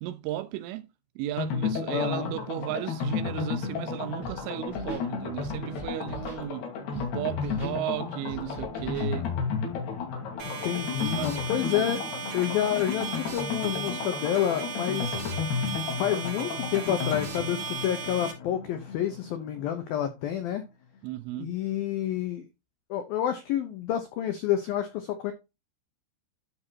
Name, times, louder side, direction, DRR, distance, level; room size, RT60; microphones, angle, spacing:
voice 1, 0.0-0.9 1.2-9.3 11.2-11.4 21.0-21.5, right 14 dB, 80° right, 3.3 m, -34 dB
sound 1, 1.4-20.0 20.3-20.4 20.6-20.7, left 6 dB, 60° left, 4.4 m, -33 dB
voice 2, 1.9-2.3 10.4-12.0 12.3-15.2 16.0-20.6 21.3-22.5 22.9-25.3, left 10 dB, 85° left, 2.1 m, -29 dB
Scratching (performance technique), 4.2-4.4 4.7-5.1 5.4-6.4 6.9-7.1 7.4-7.8 8.3-9.1, equal, 20° left, 2.3 m, -41 dB
sound 2, 10.4-18.3, right 6 dB, 60° right, 4.3 m, -36 dB
13.0 x 4.7 x 2.8 m
omnidirectional pair, 5.7 m